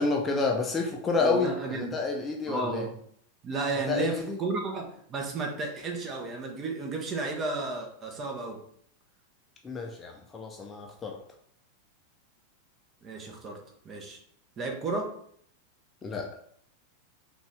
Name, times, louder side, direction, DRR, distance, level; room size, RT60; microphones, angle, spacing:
voice 1, 0.0-2.9 3.9-4.4 9.6-11.2 16.0-16.3, left 4 dB, 20° left, 1 dB, 0.7 m, -29 dB
voice 2, 1.2-1.9 2.5-2.9 3.4-8.6 13.0-13.6 13.8-14.2 14.6-15.1, right 3 dB, 25° right, 2 dB, 1.0 m, -33 dB
5.2 x 2.6 x 3.3 m, 0.64 s
figure-of-eight pair, 90°, 0 cm